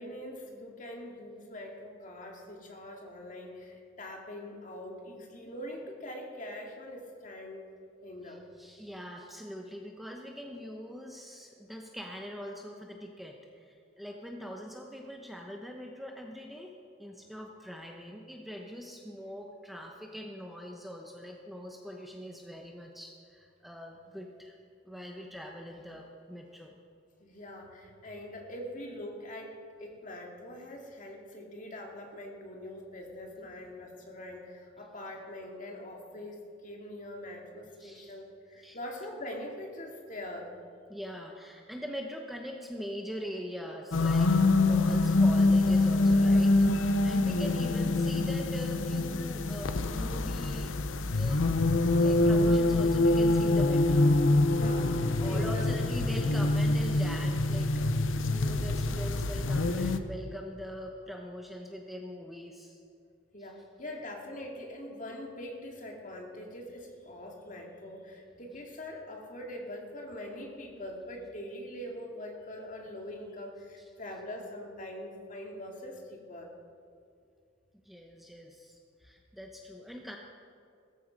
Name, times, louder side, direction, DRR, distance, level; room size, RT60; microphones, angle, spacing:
voice 1, 0.0-7.7 8.0-8.4 27.2-40.5 54.4-55.8 63.3-76.5, left 1 dB, 40° left, 1 dB, 2.2 m, -43 dB
voice 2, 8.2-16.7 17.0-24.5 24.8-26.8 37.8-38.2 38.6-38.8 40.9-50.7 51.1-51.4 52.0-54.1 55.2-62.8 63.4-63.5 73.8-73.9 77.7-80.2, equal, ahead, 1 dB, 0.9 m, -42 dB
sound 1, 43.9-60.0, left 2 dB, 80° left, 0.7 m, -25 dB
17.5 x 14.0 x 5.2 m, 2.4 s
head